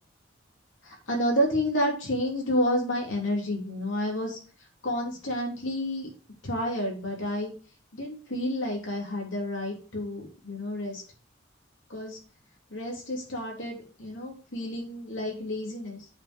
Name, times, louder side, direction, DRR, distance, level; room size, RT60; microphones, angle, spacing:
voice 1, 0.8-4.4 4.8-6.1 6.4-7.5 7.9-11.0 11.9-12.2 12.7-16.1, equal, 75° left, -1 dB, 3.2 m, -30 dB
7.9 x 5.1 x 5.3 m, 0.39 s
head